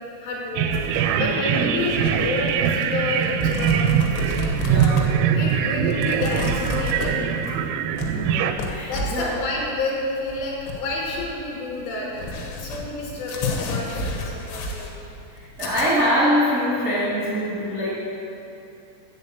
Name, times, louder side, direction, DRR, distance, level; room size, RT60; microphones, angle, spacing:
voice 1, 0.2-0.7 1.2-4.5 5.3-7.7 8.9-12.3 12.6-14.9, left 2 dB, 70° left, -2 dB, 3.0 m, -29 dB
sound 1, 0.6-8.5, right 8 dB, 85° right, 3.2 m, -22 dB
sound 2, 0.7-15.9, left 2 dB, 85° left, 3.8 m, -32 dB
voice 2, 1.2-1.5 4.6-5.1 8.1-9.3 15.3-17.9, equal, 55° right, -9 dB, 0.8 m, -24 dB
7.5 x 6.8 x 8.2 m, 2.8 s
omnidirectional pair, 5.8 m